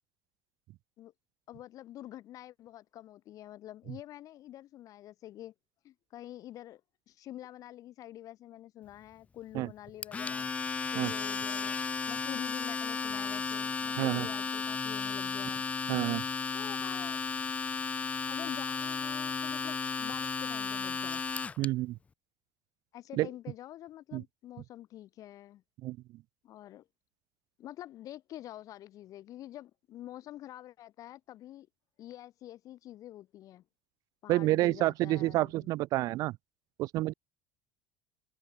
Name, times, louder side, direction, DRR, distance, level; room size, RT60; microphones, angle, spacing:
voice 1, 1.5-5.5 5.8-6.8 7.1-10.5 10.9-11.8 12.1-15.7 16.5-17.2 18.2-21.2 22.9-25.6 26.4-26.9 27.6-31.7 32.0-33.6 34.2-35.7, left 13 dB, 50° left, 3.5 m, -47 dB
Domestic sounds home sounds, 10.0-21.7, left 5 dB, 15° left, 0.4 m, -34 dB
voice 2, 14.0-14.3 15.9-16.2 21.6-22.0 23.1-23.3 24.1-24.2 25.8-26.0 34.3-36.4 36.8-37.1, right 17 dB, 50° right, 0.4 m, -29 dB
supercardioid pair, 120°, 8 cm